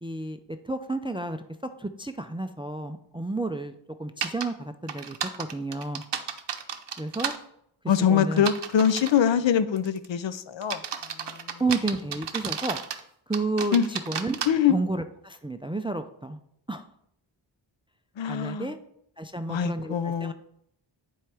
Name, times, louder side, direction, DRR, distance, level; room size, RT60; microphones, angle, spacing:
voice 1, 0.0-1.4 1.8-6.0 7.0-7.3 8.1-8.5 11.6-12.8 13.3-14.4 14.7-16.4 16.7-16.9 18.3-18.8 19.2-20.3, right 2 dB, 10° right, 9 dB, 0.3 m, -31 dB
sound 1, 4.2-4.5 4.9-7.4 8.4-9.2 9.8-10.1 10.6-13.0 13.3-14.5, right 7 dB, 60° right, 0.7 m, -32 dB
voice 2, 7.9-10.8 11.2-11.6 13.7-13.9 14.5-14.7 18.2-18.7 19.5-20.3, left 8 dB, 70° left, 13 dB, 0.6 m, -24 dB
10.5 x 4.7 x 3.4 m, 0.74 s
wide cardioid pair, 95°, 47 cm